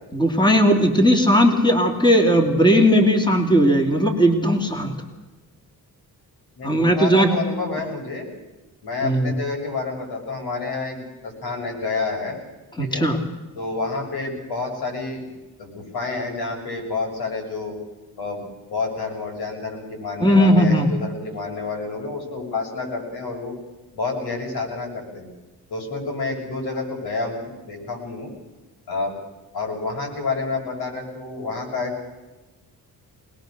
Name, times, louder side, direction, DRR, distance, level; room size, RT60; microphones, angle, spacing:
voice 1, 0.1-4.9 6.6-7.3 9.0-9.3 12.8-13.2 20.2-20.9, equal, 10° left, 4 dB, 2.9 m, -17 dB
voice 2, 6.6-8.2 8.8-12.4 12.8-13.0 13.6-15.3 15.6-17.8 18.2-18.4 18.7-23.5 23.9-25.3 25.7-28.3 28.9-29.1 29.5-32.1, left 3 dB, 90° left, 1 dB, 7.2 m, -29 dB
25.0 x 20.0 x 6.7 m, 1.1 s
cardioid pair, 125°, 37 cm